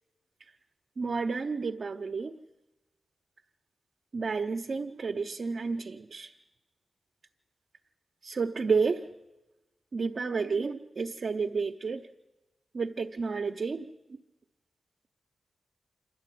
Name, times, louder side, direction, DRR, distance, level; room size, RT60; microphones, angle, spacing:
voice 1, 1.0-2.4 4.1-6.3 8.2-9.1 9.9-12.1 12.7-14.2, right 4 dB, 45° right, 3 dB, 0.8 m, -31 dB
27.0 x 12.0 x 9.3 m, 1.0 s
wide cardioid pair, 155°, 0 cm